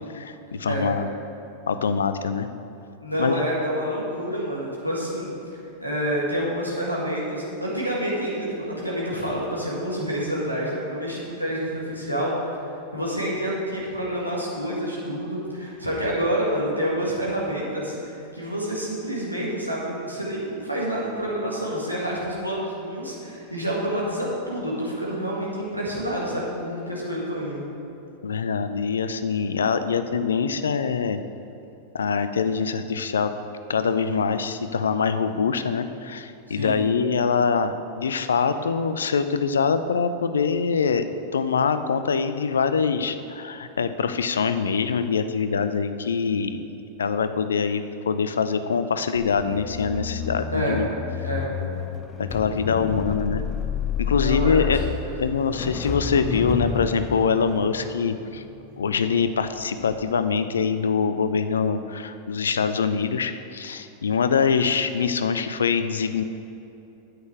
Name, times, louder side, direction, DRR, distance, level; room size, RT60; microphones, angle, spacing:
voice 1, 0.1-1.1 1.7-2.5 3.2-3.4 28.2-31.2 31.9-33.3 33.7-41.0 41.3-46.7 47.0-50.9 52.2-53.4 54.0-54.8 55.2-58.4 58.8-66.2, left 5 dB, 70° left, 10 dB, 0.5 m, -24 dB
voice 2, 3.0-12.3 12.9-27.6 36.6-36.8 50.5-50.8 51.2-51.5 54.1-54.6 55.0-55.3, equal, 90° right, -6 dB, 2.0 m, -28 dB
sound 1, 49.2-59.5 59.8-60.1, left 7 dB, 25° left, 0.6 m, -31 dB
9.5 x 8.4 x 4.7 m, 2.8 s
figure-of-eight pair, 90°, 0 cm